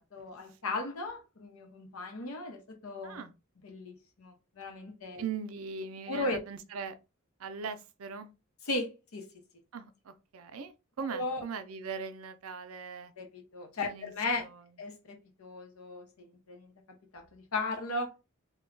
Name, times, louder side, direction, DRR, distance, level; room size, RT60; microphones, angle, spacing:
voice 1, 0.0-3.2 3.6-5.2 6.1-6.4 8.7-9.3 11.1-11.4 13.2-14.5 14.8-16.7 17.1-18.1, left 2 dB, 80° left, 0.8 m, -36 dB
voice 2, 3.0-3.4 5.2-7.0 7.4-8.3 9.7-13.1 13.8-14.1 14.4-14.7, right 5 dB, 75° right, 0.5 m, -40 dB
2.2 x 2.2 x 3.7 m
head